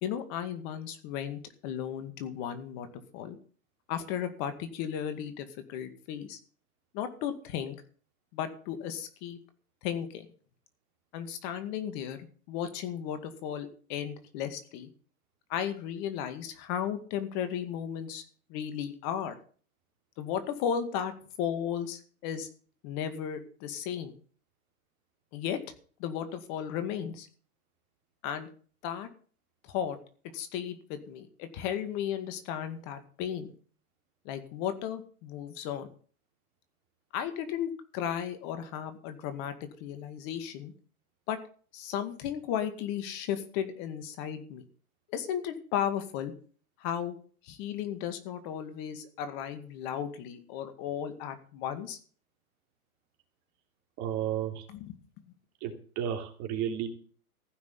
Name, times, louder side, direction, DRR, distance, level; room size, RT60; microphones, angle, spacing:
voice 1, 0.0-3.4 3.9-6.4 6.9-7.8 8.3-9.4 9.8-10.3 11.1-12.2 12.5-14.9 15.5-18.2 18.5-19.4 20.2-22.5 22.8-24.2 25.3-25.6 26.0-27.3 28.2-28.5 28.8-29.1 29.6-30.0 30.3-33.5 34.3-35.9 37.1-40.7 41.3-41.4 41.7-44.6 45.1-46.3 46.8-47.2 47.4-52.0 54.7-54.9, left 9 dB, 45° left, 9 dB, 2.1 m, -35 dB
voice 2, 54.0-54.7 55.6-56.9, right 9 dB, 40° right, 5 dB, 3.1 m, -32 dB
15.0 x 6.2 x 9.6 m, 0.43 s
hypercardioid pair, 115°, 45 cm